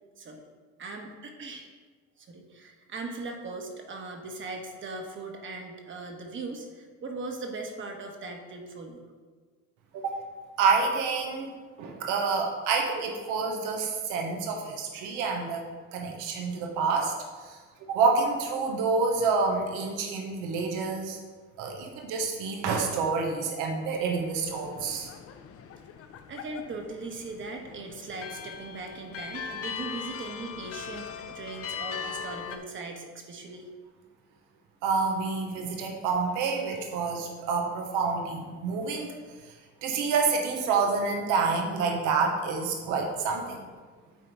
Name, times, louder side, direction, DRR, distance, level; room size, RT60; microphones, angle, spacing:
voice 1, 0.8-1.7 2.2-9.0 26.3-33.7, right 3 dB, 40° right, 3 dB, 1.2 m, -39 dB
voice 2, 10.6-11.5 11.8-15.7 15.9-21.2 21.6-25.1 34.8-39.1 39.8-43.6, right 4 dB, 85° right, 2 dB, 1.0 m, -28 dB
sound 1, 24.2-32.6, left 7 dB, 50° left, 0.6 m, -40 dB
8.4 x 4.0 x 4.6 m, 1.5 s
cardioid pair, 100°, 30 cm